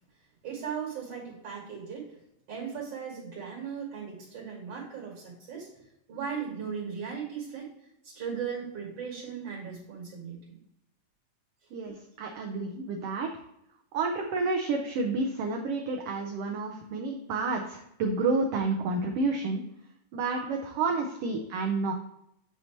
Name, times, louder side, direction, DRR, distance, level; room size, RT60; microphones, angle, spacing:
voice 1, 0.4-2.2 2.5-5.7 6.1-7.7 8.0-10.6 12.3-12.4 20.3-20.5, right 6 dB, 55° right, -3 dB, 2.5 m, -37 dB
voice 2, 11.7-13.3 13.9-19.6 20.1-21.9, right 3 dB, 75° right, 2 dB, 1.4 m, -30 dB
8.3 x 2.9 x 4.3 m, 0.80 s
omnidirectional pair, 3.3 m